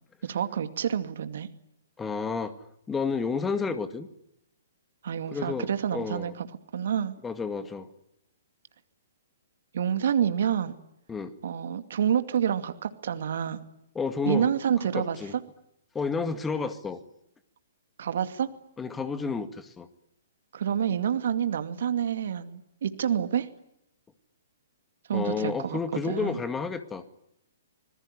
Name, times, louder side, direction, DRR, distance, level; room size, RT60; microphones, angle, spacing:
voice 1, 0.2-1.5 5.0-6.5 6.7-7.1 9.7-10.8 11.4-13.6 14.3-15.2 18.0-18.5 20.5-23.5 25.1-25.8 26.1-26.4, right 8 dB, 60° right, 9 dB, 2.4 m, -28 dB
voice 2, 2.0-2.6 2.9-4.1 5.3-5.7 5.9-6.3 7.2-7.9 11.1-11.3 14.0-14.5 14.9-15.4 15.9-17.0 18.8-19.9 25.1-27.0, left 5 dB, 10° left, 10 dB, 2.0 m, -30 dB
26.0 x 21.0 x 9.9 m, 0.78 s
figure-of-eight pair, 125°, 0 cm